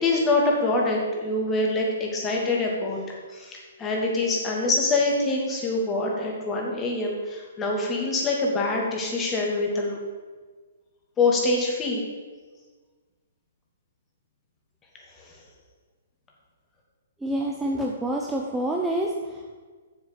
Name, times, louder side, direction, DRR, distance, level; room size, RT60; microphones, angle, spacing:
voice 1, 0.0-3.0 3.3-10.0 11.2-12.0 15.2-15.3, left 2 dB, 20° left, -1 dB, 2.4 m, -25 dB
voice 2, 17.2-19.6, right 1 dB, 5° right, -1 dB, 0.9 m, -27 dB
7.2 x 7.1 x 7.0 m, 1.4 s
hypercardioid pair, 125°, 0 cm